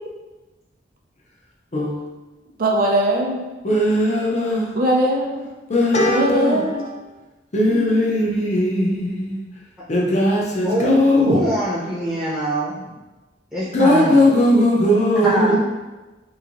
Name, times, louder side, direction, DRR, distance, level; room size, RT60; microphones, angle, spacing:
voice 1, 2.6-3.4 4.7-5.5 6.1-6.8, right 1 dB, 50° right, 0 dB, 0.5 m, -20 dB
voice 2, 3.6-4.7 5.7-7.1 7.5-9.4 9.9-11.4 13.7-15.5, left 1 dB, 40° left, -3 dB, 0.6 m, -18 dB
voice 3, 11.2-12.9 13.5-14.2 15.2-15.5, right 1 dB, 5° right, -12 dB, 0.7 m, -23 dB
3.0 x 2.6 x 2.5 m, 1.1 s
head